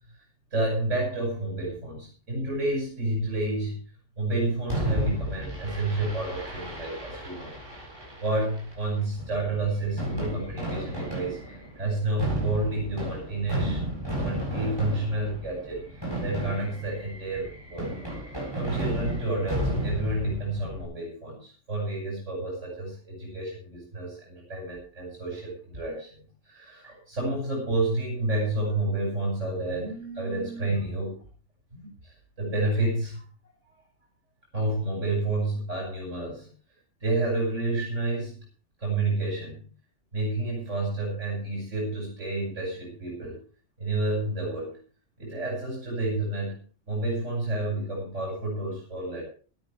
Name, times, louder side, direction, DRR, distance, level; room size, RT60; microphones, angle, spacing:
voice 1, 0.5-3.8 4.2-7.6 8.2-13.8 14.2-17.9 18.5-31.2 31.7-33.2 34.5-36.5 37.0-38.4 38.8-39.7 40.1-43.4 43.8-44.8 45.2-49.2, right 2 dB, 85° right, -1 dB, 6.4 m, -30 dB
Fireworks, 4.7-20.8, equal, 20° right, 8.0 m, -33 dB
19.0 x 12.5 x 3.3 m, 0.39 s
omnidirectional pair, 1.2 m